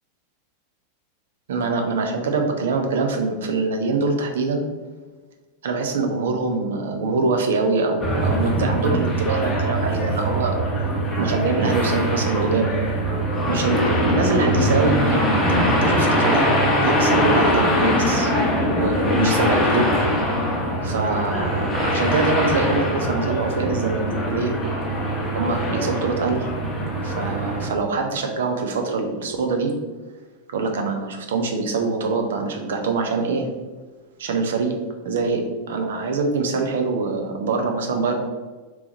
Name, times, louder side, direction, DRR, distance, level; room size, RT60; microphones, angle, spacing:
voice 1, 1.5-4.6 5.6-10.6 11.2-12.8 13.5-16.5 16.8-18.3 18.6-19.9 20.4-20.5 20.8-24.5 25.3-26.5 27.0-29.7 30.5-33.5 34.2-34.7 35.0-35.4 35.7-38.2, right 3 dB, 60° right, 3 dB, 0.7 m, -24 dB
sound 1, 8.0-27.7, equal, 15° left, 1.0 m, -22 dB
3.4 x 3.1 x 3.9 m, 1.3 s
figure-of-eight pair, 90°, 0 cm